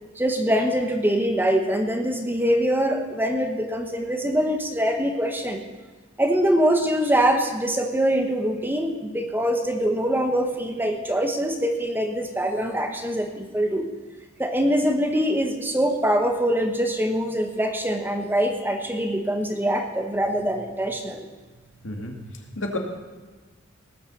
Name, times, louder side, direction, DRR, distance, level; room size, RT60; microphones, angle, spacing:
voice 1, 0.2-5.6 6.2-13.9 14.4-21.2, equal, 10° right, 4 dB, 1.0 m, -23 dB
voice 2, 21.8-22.8, left 2 dB, 70° left, 2 dB, 2.3 m, -32 dB
18.5 x 7.3 x 7.1 m, 1.3 s
head